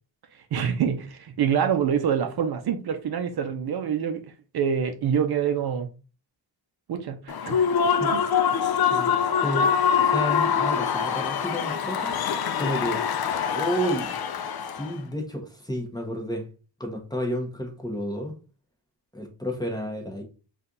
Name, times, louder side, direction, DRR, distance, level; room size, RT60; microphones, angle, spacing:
voice 1, 0.5-4.2 4.5-5.9 6.9-7.7 8.1-8.2, right 8 dB, 60° right, 0.6 m, -26 dB
Human voice / Cheering / Applause, 7.3-14.9, left 7 dB, 55° left, 0.5 m, -24 dB
voice 2, 9.4-9.7 10.0-12.1 12.5-13.0 13.5-14.1 14.6-16.5 16.8-18.3 19.1-20.2, equal, 10° left, 0.9 m, -31 dB
4.3 x 2.5 x 3.8 m
wide cardioid pair, 145°, 45 cm